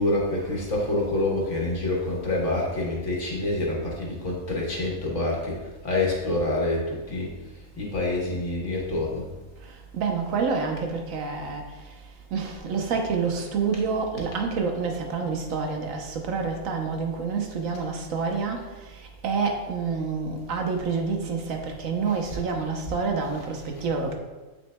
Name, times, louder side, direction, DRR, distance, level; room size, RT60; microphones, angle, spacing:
voice 1, 0.0-7.3 7.8-9.3 22.3-22.4, left 2 dB, 60° left, -3 dB, 1.6 m, -27 dB
voice 2, 9.9-11.6 12.3-18.6 19.2-24.2, right 5 dB, 80° right, 3 dB, 1.2 m, -28 dB
7.3 x 6.1 x 2.2 m, 1.2 s
omnidirectional pair, 1.4 m